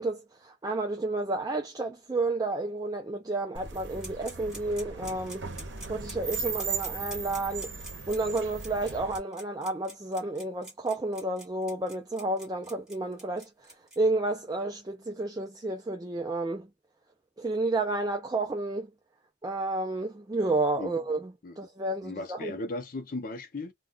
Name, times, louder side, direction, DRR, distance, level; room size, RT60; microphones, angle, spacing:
voice 1, 0.0-5.5 5.9-16.7 17.4-18.9 19.4-22.6, right 2 dB, 20° right, 0.4 m, -31 dB
sound 1, 3.5-9.2, right 5 dB, 75° right, 0.8 m, -37 dB
sound 2, 4.0-14.0, right 1 dB, 5° right, 1.2 m, -45 dB
voice 2, 22.0-23.7, left 2 dB, 50° left, 0.5 m, -36 dB
2.3 x 2.2 x 3.7 m
head